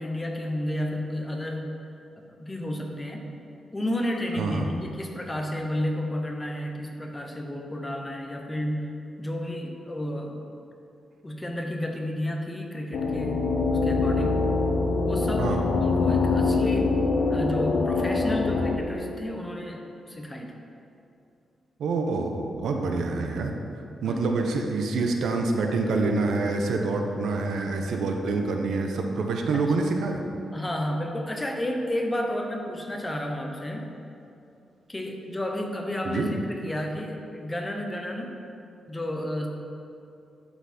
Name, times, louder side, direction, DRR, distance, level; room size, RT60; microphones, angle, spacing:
voice 1, 0.0-1.7 2.2-3.3 3.7-8.9 9.2-10.4 11.2-14.4 15.0-17.0 17.3-19.8 20.1-20.5 23.0-23.1 24.0-24.3 29.5-29.8 30.5-33.9 34.9-38.4 38.9-39.5, left 1 dB, 15° left, 2 dB, 0.9 m, -31 dB
voice 2, 4.3-4.7 15.4-15.6 21.8-23.5 24.0-30.2 36.1-36.3, right 3 dB, 80° right, 3 dB, 0.9 m, -26 dB
sound 1, 12.9-18.8, left 3 dB, 80° left, 0.9 m, -24 dB
11.5 x 5.9 x 4.4 m, 2.7 s
wide cardioid pair, 130°, 0 cm